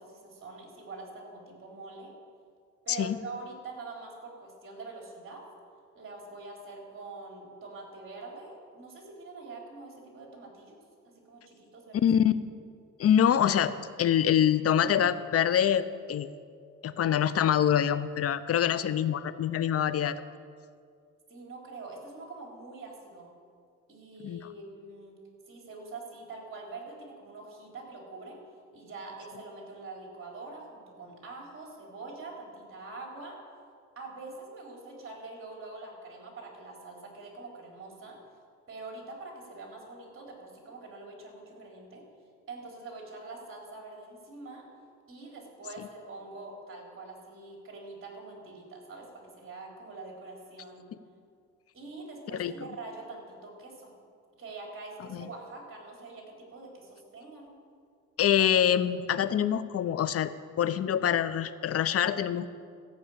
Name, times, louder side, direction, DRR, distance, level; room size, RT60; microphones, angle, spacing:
voice 1, 0.0-2.1 2.9-5.4 6.0-10.8 11.2-12.1 21.3-23.3 23.9-25.2 25.5-28.4 28.7-33.4 34.0-38.2 38.7-42.0 42.5-44.6 45.1-50.9 51.7-53.9 54.4-57.5, right 3 dB, 45° right, -1 dB, 3.7 m, -44 dB
voice 2, 12.0-12.3 13.0-13.7 14.0-16.3 16.8-20.2 24.2-24.4 52.3-52.5 55.1-55.3 58.2-60.3 60.6-62.5, left 9 dB, 50° left, 14 dB, 0.6 m, -25 dB
14.0 x 6.1 x 8.6 m, 2.2 s
cardioid pair, 90°, 30 cm